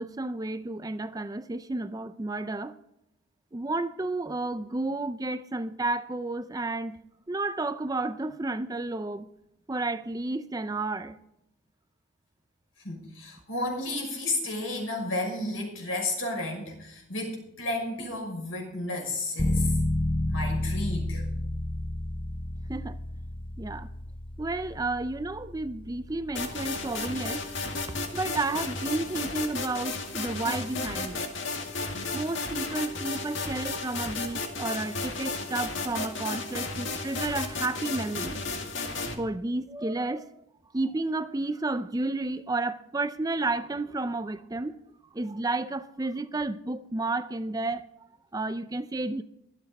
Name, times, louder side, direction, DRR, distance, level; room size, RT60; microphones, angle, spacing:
voice 1, 0.0-2.8 3.5-7.0 7.3-9.3 9.7-11.2 22.7-23.0 23.6-23.9 24.4-27.5 28.1-31.3 32.1-38.4 39.2-40.3 40.7-44.8 45.1-47.9 48.3-49.2, right 2 dB, 20° right, 0.4 m, -31 dB
voice 2, 12.8-19.8 20.3-21.2, left 2 dB, 80° left, 6.1 m, -32 dB
sound 1, 19.4-29.9, left 1 dB, 25° left, 0.8 m, -32 dB
sound 2, 26.4-39.2, left 3 dB, 65° left, 2.2 m, -33 dB
24.0 x 8.0 x 4.1 m
head